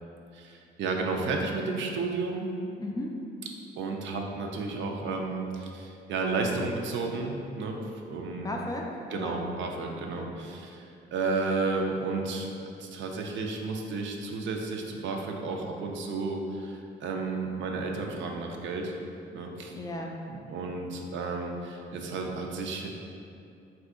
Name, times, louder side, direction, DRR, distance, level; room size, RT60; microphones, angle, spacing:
voice 1, 0.3-2.5 3.8-7.8 8.1-8.5 9.1-12.5 12.8-19.0 19.3-19.7 20.3-22.9, right 3 dB, 70° right, 1 dB, 0.4 m, -32 dB
voice 2, 2.8-3.1 8.3-9.4 10.0-10.3 19.7-20.2, left 1 dB, 20° left, 0 dB, 0.3 m, -36 dB
2.7 x 2.5 x 3.6 m, 2.6 s
cardioid pair, 90°, 20 cm